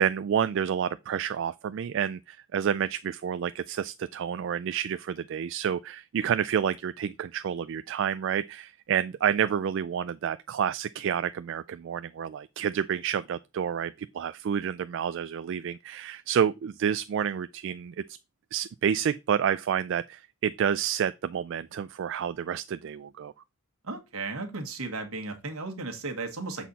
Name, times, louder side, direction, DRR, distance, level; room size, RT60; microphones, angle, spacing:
voice 1, 0.0-18.0 18.5-23.3, right 8 dB, 55° right, 0.3 m, -29 dB
voice 2, 23.8-26.7, right 3 dB, 75° right, 1.5 m, -35 dB
7.3 x 4.3 x 4.0 m
head